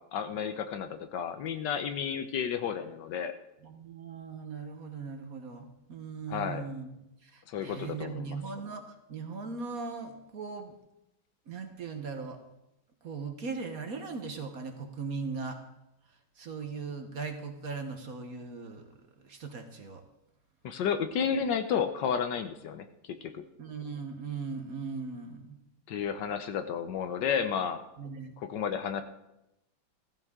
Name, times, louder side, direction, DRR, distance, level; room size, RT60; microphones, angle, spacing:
voice 1, 0.0-3.3 6.3-6.7 7.5-8.4 20.6-23.4 25.9-27.8 28.4-29.0, left 7 dB, 70° left, 9 dB, 1.3 m, -32 dB
voice 2, 3.6-6.9 7.2-8.8 9.1-10.7 11.5-12.4 13.0-15.6 16.4-18.9 19.2-20.0 23.6-25.6 28.0-28.3, right 4 dB, 55° right, 6 dB, 1.3 m, -39 dB
14.5 x 14.5 x 3.7 m, 0.89 s
omnidirectional pair, 2.1 m